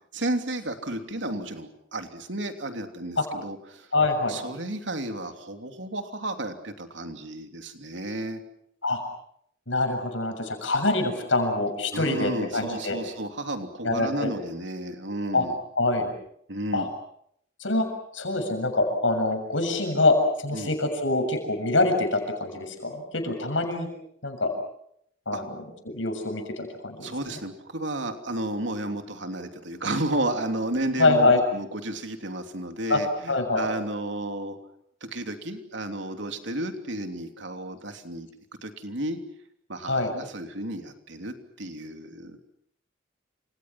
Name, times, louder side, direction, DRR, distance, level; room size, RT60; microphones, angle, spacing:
voice 1, 0.1-3.9 4.3-8.4 11.9-15.6 16.5-16.9 20.5-20.7 25.3-25.4 27.0-34.6 35.0-38.3 38.6-39.2 39.7-42.4, right 1 dB, 70° right, 6 dB, 3.1 m, -32 dB
voice 2, 3.9-4.4 8.8-9.0 9.7-13.0 13.8-14.3 15.3-15.5 15.8-16.1 16.7-16.9 17.6-17.9 18.1-23.9 24.2-24.5 25.3-25.5 25.9-27.1 31.0-31.4 32.9-33.0 33.3-33.7 39.8-40.1, left 2 dB, 80° left, 5 dB, 7.0 m, -24 dB
29.0 x 27.5 x 6.1 m, 0.71 s
head